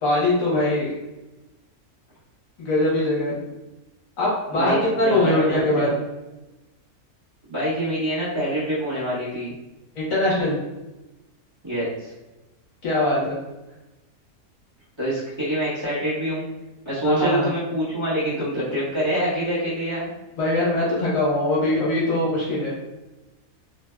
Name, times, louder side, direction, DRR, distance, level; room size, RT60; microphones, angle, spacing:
voice 1, 0.0-0.9 2.6-3.4 4.2-5.9 9.9-10.5 12.8-13.4 17.0-17.5 20.4-22.7, left 1 dB, 65° left, -6 dB, 1.3 m, -22 dB
voice 2, 4.5-5.9 7.5-9.5 11.6-12.1 15.0-16.4 16.8-20.1, right 1 dB, 20° right, -13 dB, 1.2 m, -25 dB
3.1 x 2.6 x 2.2 m, 1.0 s
omnidirectional pair, 1.6 m